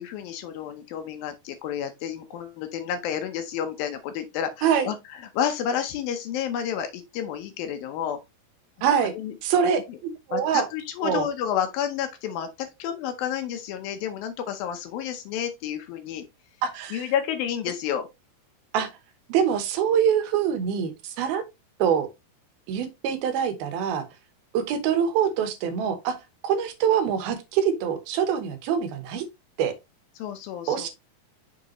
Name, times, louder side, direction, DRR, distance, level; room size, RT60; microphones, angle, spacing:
voice 1, 0.0-5.0 5.3-8.2 9.1-9.3 10.3-16.3 16.9-18.1 30.2-30.9, left 9 dB, 80° left, 2.5 m, -30 dB
voice 2, 4.6-4.9 8.8-9.1 9.4-10.7 11.0-11.3 16.6-17.1 18.7-18.9 19.3-21.4 21.8-22.1 22.7-24.0 24.5-26.2 26.4-29.2 29.6-29.7 30.7-30.9, right 8 dB, 85° right, 3.0 m, -24 dB
6.6 x 5.1 x 3.0 m
omnidirectional pair, 4.2 m